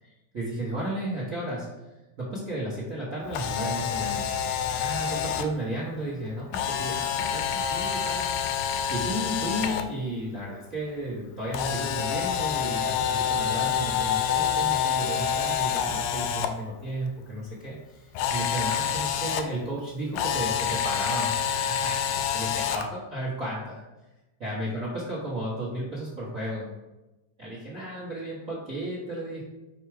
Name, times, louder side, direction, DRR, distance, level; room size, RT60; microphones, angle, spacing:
voice 1, 0.0-1.7 2.2-4.3 4.7-23.8 24.4-26.7 27.4-29.4, right 1 dB, 85° right, -6 dB, 0.7 m, -34 dB
Camera, 3.3-5.5 6.5-9.8 11.5-16.5 18.2-19.4 20.1-22.9, left 8 dB, 80° left, 1.8 m, -27 dB
4.8 x 4.7 x 4.9 m, 1.0 s
omnidirectional pair, 3.7 m